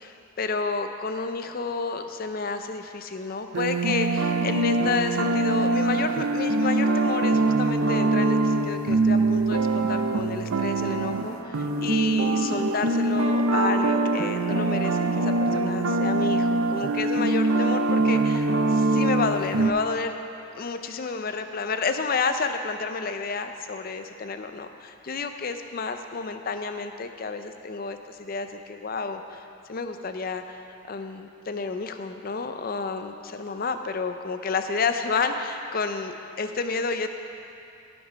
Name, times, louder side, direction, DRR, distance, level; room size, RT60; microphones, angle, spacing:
voice 1, 0.0-20.2 20.5-29.4 29.7-37.1, left 4 dB, 45° left, 7 dB, 0.5 m, -30 dB
sound 1, 3.5-19.7, right 2 dB, 80° right, 0.5 m, -23 dB
sound 2, 10.7-19.3 20.2-20.5, left 1 dB, 10° left, 1.3 m, -42 dB
14.0 x 5.2 x 5.0 m, 2.6 s
head